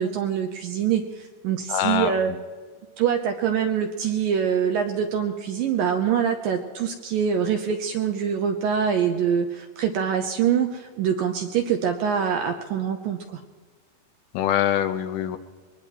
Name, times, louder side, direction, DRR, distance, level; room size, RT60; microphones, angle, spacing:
voice 1, 0.0-2.3 3.0-13.4, right 8 dB, 75° right, 4 dB, 2.1 m, -24 dB
voice 2, 1.7-2.2 14.3-15.4, left 10 dB, 80° left, 8 dB, 2.2 m, -24 dB
23.0 x 20.0 x 3.1 m, 1.5 s
omnidirectional pair, 4.9 m